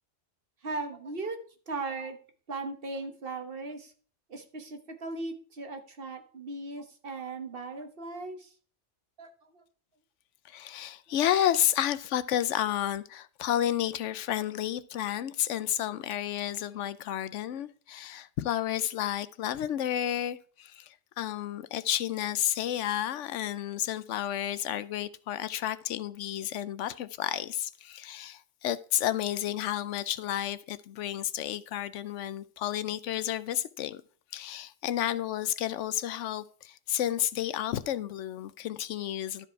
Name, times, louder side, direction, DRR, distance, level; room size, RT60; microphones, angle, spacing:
voice 1, 0.6-1.4 1.7-2.2 2.5-3.9 4.3-8.5 9.2-9.6, right 3 dB, 55° right, 1.3 m, -38 dB
voice 2, 10.4-34.0 34.3-39.5, left 11 dB, 90° left, 0.9 m, -31 dB
12.5 x 5.0 x 4.6 m
omnidirectional pair, 1.2 m